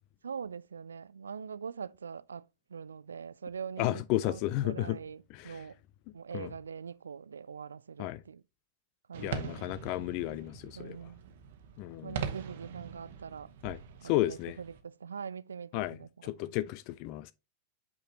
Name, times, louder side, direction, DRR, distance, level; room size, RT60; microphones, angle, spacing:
voice 1, 0.2-2.4 2.7-5.8 6.1-8.4 9.1-9.7 10.8-11.2 12.0-13.5 14.0-16.5, right 6 dB, 70° right, 0.3 m, -43 dB
voice 2, 3.8-5.0 5.3-5.6 6.3-6.5 8.0-8.2 9.2-11.0 11.8-12.2 13.6-14.6 15.7-17.3, left 16 dB, 45° left, 0.4 m, -33 dB
sound 1, 9.1-14.8, right 6 dB, 55° right, 1.1 m, -42 dB
8.3 x 5.0 x 2.8 m
figure-of-eight pair, 90°, 0 cm